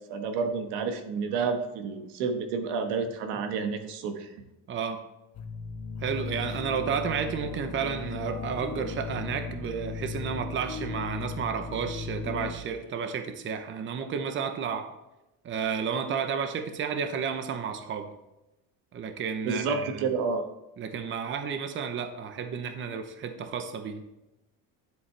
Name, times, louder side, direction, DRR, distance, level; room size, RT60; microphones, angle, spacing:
voice 1, 0.1-4.3 19.4-20.4, right 5 dB, 90° right, 6 dB, 1.3 m, -30 dB
voice 2, 4.7-5.0 6.0-14.9 15.4-18.1 18.9-20.1 20.8-24.0, right 6 dB, 30° right, 7 dB, 0.8 m, -32 dB
sound 1, 5.3-12.5, left 4 dB, 45° left, 1.3 m, -36 dB
10.0 x 8.1 x 3.3 m, 0.94 s
cardioid pair, 150°, 39 cm